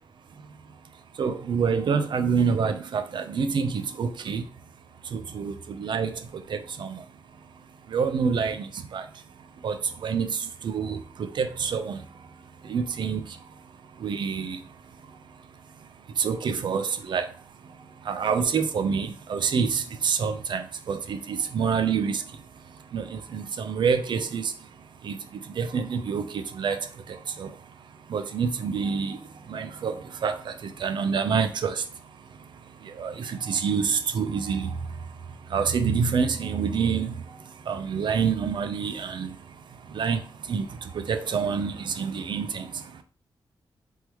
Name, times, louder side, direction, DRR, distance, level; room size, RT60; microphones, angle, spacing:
voice 1, 1.2-4.4 5.1-6.1 6.5-7.0 7.9-9.0 9.6-9.8 10.0-10.4 10.6-12.0 12.7-13.2 14.0-14.6 16.2-17.2 18.1-22.2 22.9-24.5 25.0-25.2 25.6-26.8 27.4-27.5 28.1-29.2 29.5-29.9 30.2-30.5 30.8-31.8 33.0-34.7 35.5-37.1 37.7-39.3 39.9-40.2 40.5-40.7 41.1-42.7, right 6 dB, 70° right, 8 dB, 0.6 m, -27 dB
3.6 x 3.0 x 4.6 m, 0.38 s
wide cardioid pair, 110°, 8 cm